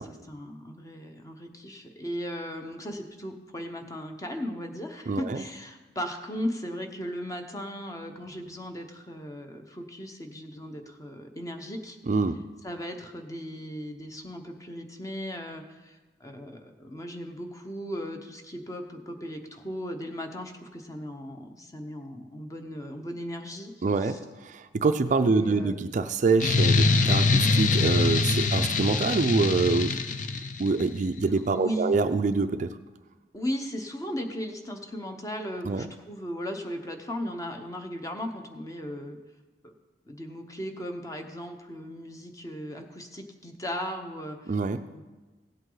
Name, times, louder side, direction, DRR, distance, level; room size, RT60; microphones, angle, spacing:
voice 1, 0.0-12.0 12.6-23.7 24.0-24.2 25.3-25.7 26.2-26.4 31.5-32.0 33.3-39.2 39.6-39.7 40.1-44.5 44.9-45.0, equal, 20° left, 5 dB, 0.9 m, -37 dB
voice 2, 5.1-5.4 12.0-12.4 23.8-30.0 30.6-32.8 35.6-35.9 44.5-44.8, right 3 dB, 45° right, 9 dB, 0.4 m, -25 dB
sound 1, 26.4-30.9, left 3 dB, 45° left, 0.6 m, -23 dB
16.0 x 8.0 x 3.9 m, 1.2 s
head